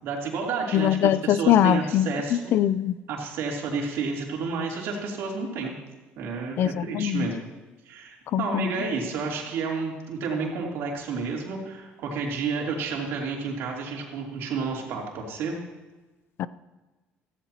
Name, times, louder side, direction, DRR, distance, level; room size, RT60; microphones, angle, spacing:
voice 1, 0.0-2.5 3.1-5.7 6.2-7.3 7.8-15.5, right 4 dB, 70° right, -1 dB, 3.2 m, -30 dB
voice 2, 0.7-3.0 6.6-7.3 8.3-8.7 16.4-16.5, left 11 dB, 60° left, 16 dB, 0.4 m, -22 dB
15.0 x 14.5 x 2.9 m, 1.2 s
supercardioid pair, 95°, 4 cm